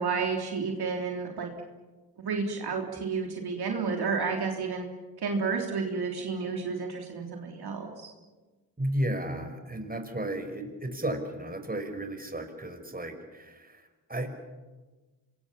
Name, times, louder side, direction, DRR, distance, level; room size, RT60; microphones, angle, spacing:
voice 1, 0.0-1.5 2.2-4.9 5.2-8.1, right 5 dB, 60° right, 2 dB, 3.4 m, -31 dB
voice 2, 8.8-14.3, right 1 dB, 20° right, 7 dB, 5.4 m, -34 dB
26.0 x 22.0 x 7.3 m, 1.3 s
supercardioid pair, 45°, 42 cm